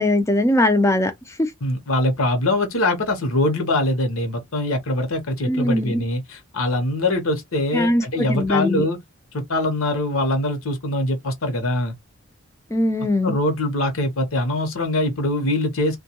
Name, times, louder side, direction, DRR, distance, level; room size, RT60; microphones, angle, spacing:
voice 1, 0.0-1.5 5.5-6.0 7.7-8.9 12.7-13.4, left 1 dB, 15° left, 0.4 m, -20 dB
voice 2, 1.6-9.0 9.3-12.0 13.2-16.0, left 1 dB, 70° left, 0.9 m, -23 dB
2.2 x 2.2 x 2.8 m
head